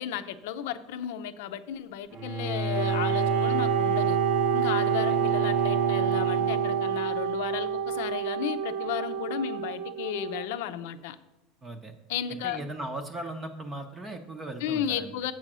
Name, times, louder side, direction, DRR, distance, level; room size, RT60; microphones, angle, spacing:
voice 1, 0.0-4.2 4.5-11.2 12.1-12.6 14.6-15.3, left 9 dB, 80° left, 11 dB, 0.6 m, -33 dB
Bowed string instrument, 2.1-7.4, right 5 dB, 45° right, 0.8 m, -30 dB
Wind instrument woodwind instrument, 2.7-10.5, right 7 dB, 70° right, 0.5 m, -28 dB
voice 2, 11.6-11.9 12.3-15.1, right 2 dB, 15° right, 5 dB, 0.7 m, -38 dB
7.5 x 5.6 x 6.1 m, 0.96 s
supercardioid pair, 155°, 0 cm